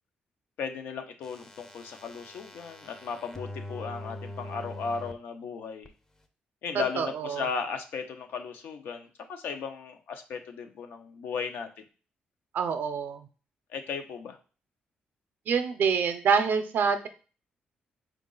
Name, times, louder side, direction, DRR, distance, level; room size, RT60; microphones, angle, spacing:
voice 1, 0.6-5.9 6.6-11.7 13.7-14.4, left 6 dB, 80° left, 6 dB, 0.6 m, -36 dB
sound 1, 1.2-5.1 5.9-6.0, left 1 dB, 15° left, 0.5 m, -43 dB
voice 2, 6.7-7.5 12.5-13.2 15.5-17.1, right 6 dB, 70° right, 9 dB, 0.5 m, -26 dB
4.0 x 2.4 x 3.8 m, 0.36 s
cardioid pair, 95°, 3 cm